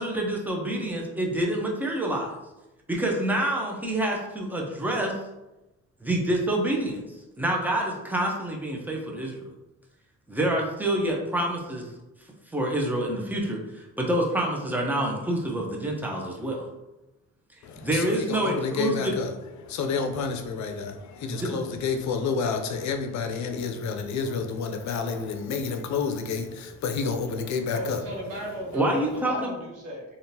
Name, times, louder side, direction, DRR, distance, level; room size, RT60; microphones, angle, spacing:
voice 1, 0.0-2.4 2.9-5.2 6.0-7.0 7.4-9.5 10.3-11.9 12.5-16.7 17.8-19.1 21.3-21.5 28.7-29.5, right 1 dB, 5° right, -1 dB, 0.7 m, -27 dB
voice 2, 17.6-28.0, left 5 dB, 65° left, 5 dB, 0.5 m, -30 dB
voice 3, 27.7-30.0, equal, 85° right, -2 dB, 1.1 m, -35 dB
3.5 x 2.5 x 2.8 m, 0.99 s
cardioid pair, 90°, 30 cm